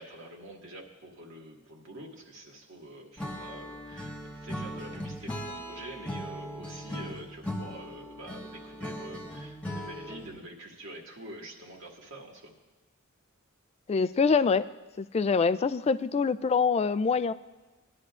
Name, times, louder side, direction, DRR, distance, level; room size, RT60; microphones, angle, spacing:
voice 1, 0.0-12.5, right 1 dB, 60° right, 0 dB, 2.0 m, -46 dB
Acoustic guitar / Strum, 3.2-10.4, equal, 5° left, 1.4 m, -39 dB
voice 2, 13.9-14.7 15.0-17.3, left 5 dB, 30° left, 15 dB, 0.3 m, -25 dB
20.5 x 11.0 x 2.5 m, 1.2 s
head